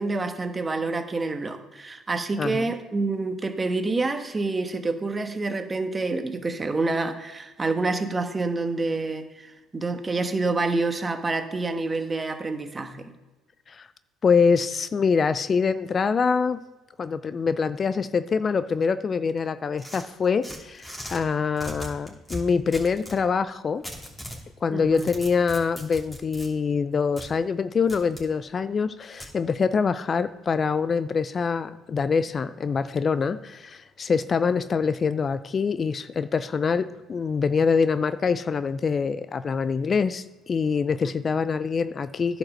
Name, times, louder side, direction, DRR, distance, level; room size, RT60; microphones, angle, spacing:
voice 1, 0.0-13.1 24.7-25.1, right 3 dB, 25° right, 7 dB, 1.3 m, -27 dB
voice 2, 14.2-16.6 17.0-23.8 24.6-42.4, left 5 dB, 40° left, 14 dB, 0.4 m, -25 dB
sound 1, 19.8-21.2 21.6-23.2 23.8-24.4 24.8-26.5 27.2-27.3 27.9-28.3 29.2-29.3, equal, 5° left, 3.0 m, -38 dB
10.5 x 5.3 x 6.4 m, 1.1 s
supercardioid pair, 70°, 0 cm